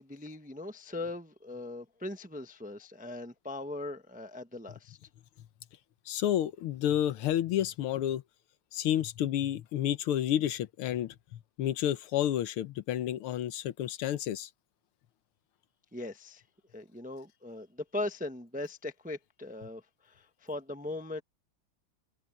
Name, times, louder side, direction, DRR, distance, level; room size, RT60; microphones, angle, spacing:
voice 1, 0.0-5.0 15.9-16.4 16.7-21.2, left 2 dB, 10° right, 0.5 m, -39 dB
voice 2, 6.1-8.2 8.7-14.5, left 11 dB, 85° left, 1.8 m, -30 dB
omnidirectional pair, 2.3 m